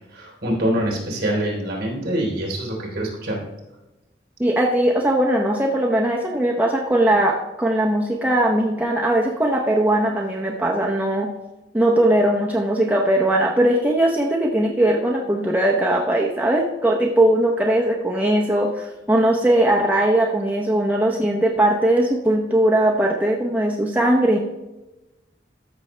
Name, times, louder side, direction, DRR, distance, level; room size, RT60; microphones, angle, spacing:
voice 1, 0.1-3.4, right 1 dB, 55° right, -1 dB, 3.5 m, -25 dB
voice 2, 4.4-11.3 11.7-24.4, right 1 dB, 10° right, -1 dB, 0.7 m, -19 dB
13.5 x 6.2 x 3.2 m, 1.0 s
head